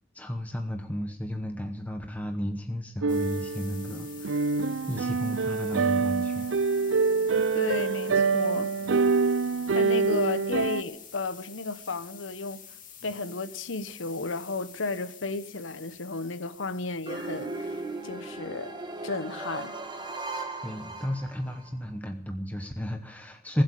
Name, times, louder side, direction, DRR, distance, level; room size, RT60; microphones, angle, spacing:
voice 1, 0.1-4.5 4.9-6.5 20.6-23.6, equal, 10° left, 1.0 m, -33 dB
sound 1, 3.0-10.8, right 4 dB, 80° right, 0.5 m, -26 dB
sound 2, 3.1-18.2, left 8 dB, 45° left, 2.7 m, -49 dB
voice 2, 7.5-8.7 9.7-12.6 13.0-17.8 18.0-18.7 19.0-19.7, left 3 dB, 85° left, 1.0 m, -33 dB
sound 3, 17.1-21.7, right 3 dB, 25° right, 2.0 m, -37 dB
20.0 x 8.0 x 8.4 m
head